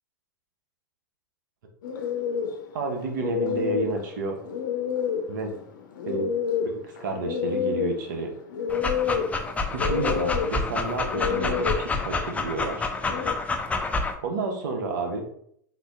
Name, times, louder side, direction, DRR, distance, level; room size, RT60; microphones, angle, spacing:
sound 1, 1.8-13.3, left 7 dB, 80° left, 0.5 m, -29 dB
voice 1, 2.7-4.4 5.3-5.6 6.0-6.3 6.6-8.3 9.7-12.8 14.2-15.2, right 3 dB, 75° right, 3 dB, 0.8 m, -30 dB
Dog, 8.7-14.1, left 3 dB, 15° left, 0.4 m, -28 dB
3.7 x 2.6 x 2.4 m, 0.68 s
hypercardioid pair, 100°, 10 cm